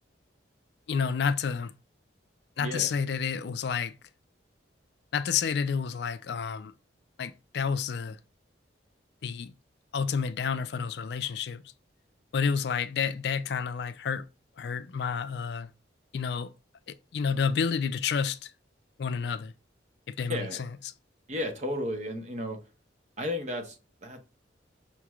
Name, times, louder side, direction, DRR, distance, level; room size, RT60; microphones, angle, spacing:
voice 1, 0.9-1.7 2.6-3.9 5.1-6.7 7.2-8.2 9.2-9.5 9.9-11.6 12.3-14.2 14.6-15.7 16.1-16.5 16.9-18.5 19.0-19.5 20.2-20.5, left 6 dB, 60° left, 0.4 m, -30 dB
voice 2, 2.6-2.9 20.3-20.6 21.3-22.6 23.2-24.2, left 1 dB, 40° right, 0.8 m, -33 dB
5.7 x 3.0 x 2.3 m
head